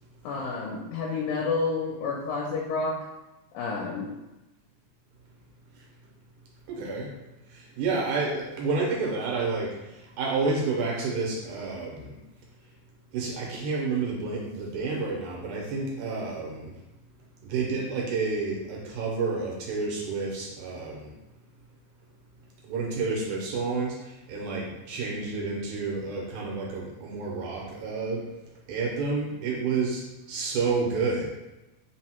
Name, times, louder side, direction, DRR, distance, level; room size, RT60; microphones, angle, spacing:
voice 1, 0.2-3.0 3.5-4.1, left 4 dB, 85° left, -2 dB, 2.0 m, -29 dB
voice 2, 6.7-7.1 7.5-12.2 13.1-16.7 17.4-21.1 22.6-28.2 28.7-31.3, right 4 dB, 90° right, -3 dB, 2.2 m, -30 dB
4.9 x 2.0 x 4.2 m, 1.0 s
omnidirectional pair, 3.5 m